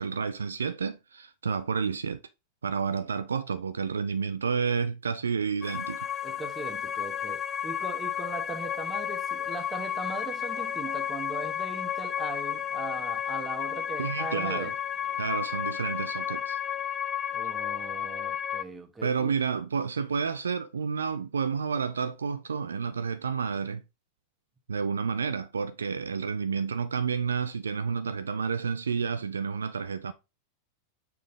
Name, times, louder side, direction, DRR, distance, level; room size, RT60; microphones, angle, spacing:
voice 1, 0.0-2.2 2.6-6.1 14.0-14.7 15.2-16.6 19.0-23.8 24.7-30.1, right 5 dB, 70° right, 0.4 m, -30 dB
sound 1, 5.6-18.6, left 9 dB, 25° left, 0.3 m, -32 dB
voice 2, 6.2-14.7 17.3-19.3, right 3 dB, 15° right, 1.2 m, -39 dB
sound 2, 8.1-16.4, left 2 dB, 65° left, 1.6 m, -57 dB
6.7 x 3.7 x 3.8 m
figure-of-eight pair, 90°, 0 cm